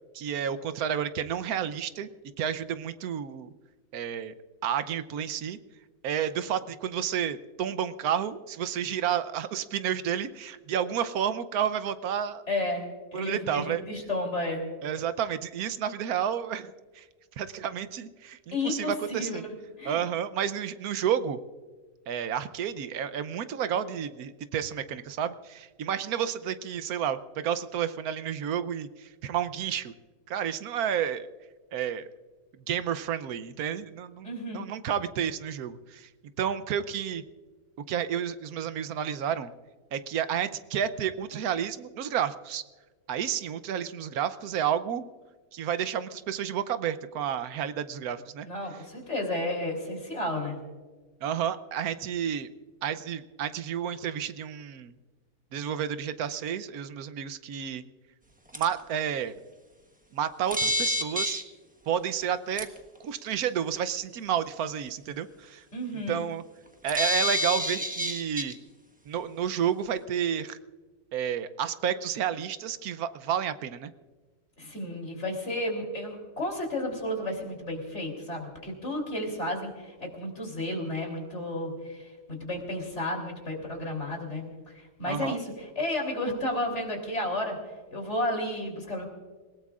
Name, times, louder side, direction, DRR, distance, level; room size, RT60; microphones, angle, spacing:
voice 1, 0.1-2.1 2.4-3.5 3.9-4.3 4.6-5.6 6.0-12.4 13.1-13.8 14.8-17.0 17.4-19.4 19.8-21.4 22.1-29.9 30.3-31.3 31.7-32.1 32.7-36.1 36.4-37.2 37.9-39.5 39.9-42.6 43.1-45.0 45.5-48.5 51.2-52.5 52.8-54.9 55.5-57.8 58.5-59.3 60.1-61.4 61.9-62.7 63.0-65.6 66.1-66.4 66.8-68.6 69.1-70.6 71.1-73.9 85.1-85.4, right 9 dB, 75° right, 12 dB, 1.2 m, -31 dB
voice 2, 12.5-12.8 13.1-14.6 18.5-19.5 19.8-20.0 34.2-34.7 48.5-50.6 65.7-66.2 74.6-87.6 87.9-89.1, left 1 dB, 45° left, 1 dB, 3.7 m, -32 dB
sound 1, 58.5-58.6 60.5-61.4 62.6-62.7 66.9-68.5, left 1 dB, 5° right, 1.1 m, -27 dB
27.5 x 18.0 x 2.4 m, 1.4 s
omnidirectional pair, 1.6 m